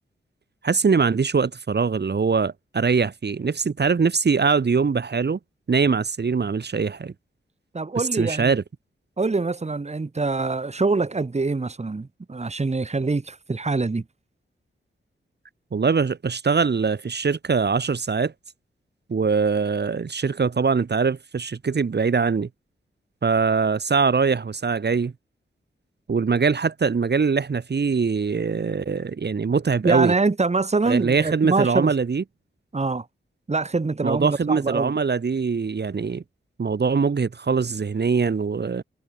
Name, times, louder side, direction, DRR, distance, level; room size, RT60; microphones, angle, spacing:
voice 1, 0.6-5.4 5.7-7.1 8.0-8.6 15.7-18.3 19.1-22.5 23.2-25.1 26.1-30.1 30.8-32.2 34.0-36.2 36.6-38.8, right 5 dB, 55° right, 2.1 m, -22 dB
voice 2, 7.7-8.5 9.2-14.0 29.8-31.9 32.7-33.1 33.5-34.9, right 3 dB, 30° right, 2.1 m, -24 dB
cardioid pair, 75°, 21 cm